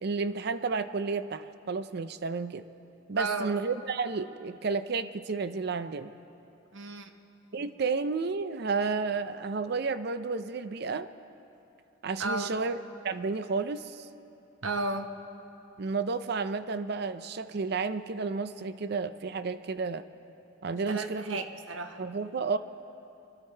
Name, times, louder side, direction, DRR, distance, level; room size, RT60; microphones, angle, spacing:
voice 1, 0.0-2.6 3.1-6.1 7.5-11.1 12.0-14.1 15.8-20.0 20.6-21.4 22.0-22.6, right 4 dB, 55° right, 12 dB, 0.5 m, -31 dB
voice 2, 3.2-3.5 6.7-7.1 7.6-7.7 12.2-12.5 14.6-15.1 20.9-22.0, right 3 dB, 70° right, 6 dB, 0.9 m, -33 dB
25.0 x 12.0 x 4.5 m, 2.9 s
head